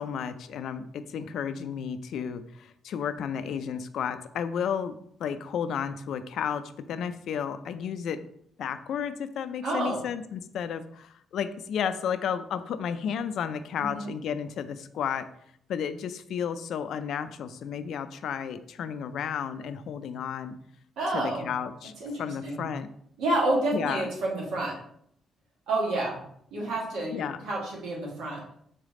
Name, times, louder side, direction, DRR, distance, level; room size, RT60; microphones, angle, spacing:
voice 1, 0.0-4.9 5.2-8.2 8.6-15.3 15.7-20.6 21.1-21.9 22.2-22.9 23.7-24.1 27.1-27.4, left 7 dB, 70° left, 11 dB, 0.3 m, -32 dB
voice 2, 9.6-10.0 13.8-14.1 21.0-21.5 22.0-22.6 23.2-24.7 25.7-26.2 26.5-28.4, right 2 dB, 85° right, -4 dB, 1.6 m, -29 dB
4.0 x 3.4 x 3.7 m, 0.69 s
cardioid pair, 90°, 0 cm